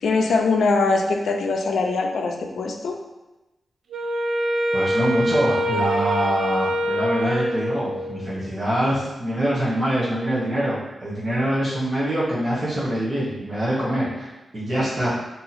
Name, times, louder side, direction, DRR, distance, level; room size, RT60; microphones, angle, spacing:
voice 1, 0.0-3.0, left 3 dB, 85° left, 3 dB, 0.4 m, -22 dB
Wind instrument woodwind instrument, 3.9-8.3, equal, 75° right, 0.4 m, -24 dB
voice 2, 4.7-15.1, right 1 dB, 30° right, -9 dB, 0.9 m, -24 dB
2.8 x 2.8 x 4.0 m, 1.0 s
wide cardioid pair, 165°, 0 cm